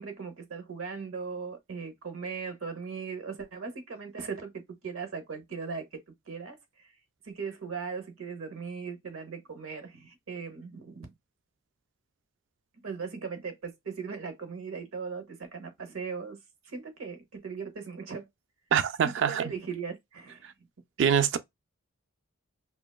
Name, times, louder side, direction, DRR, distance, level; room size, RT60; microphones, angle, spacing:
voice 1, 0.0-6.0 6.3-6.9 7.2-11.1 12.8-16.4 16.6-18.3 19.0-20.5, right 5 dB, 80° right, 0.7 m, -38 dB
voice 2, 18.7-19.4 21.0-21.4, right 8 dB, 55° right, 0.3 m, -24 dB
2.8 x 2.2 x 2.3 m
head